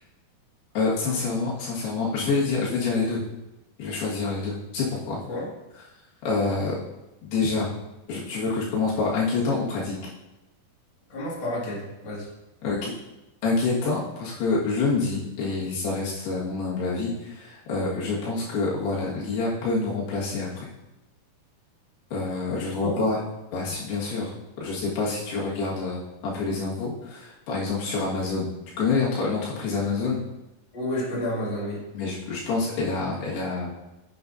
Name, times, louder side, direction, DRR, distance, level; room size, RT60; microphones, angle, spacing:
voice 1, 0.8-3.2 3.8-5.2 6.3-6.8 7.2-7.7 8.1-10.0 12.6-12.9 13.4-20.7 22.1-23.2 23.5-24.3 24.6-30.2 31.9-33.7, left 4 dB, 90° left, -6 dB, 3.8 m, -27 dB
voice 2, 11.1-12.3 22.5-23.0 30.7-31.8, left 1 dB, 35° left, -6 dB, 2.2 m, -31 dB
8.9 x 7.2 x 2.7 m, 1.0 s
omnidirectional pair, 4.5 m